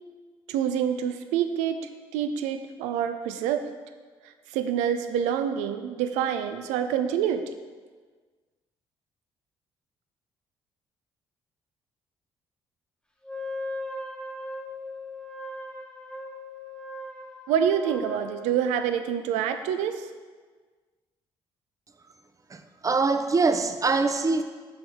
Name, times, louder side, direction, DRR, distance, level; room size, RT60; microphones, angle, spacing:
voice 1, 0.5-3.7 4.5-7.4 17.5-20.1, right 8 dB, 75° right, 8 dB, 0.5 m, -27 dB
Wind instrument woodwind instrument, 13.2-18.8, left 1 dB, 5° left, 1.2 m, -38 dB
voice 2, 22.5-24.4, right 4 dB, 30° right, 8 dB, 0.6 m, -24 dB
7.0 x 5.5 x 3.6 m, 1.5 s
hypercardioid pair, 50°, 12 cm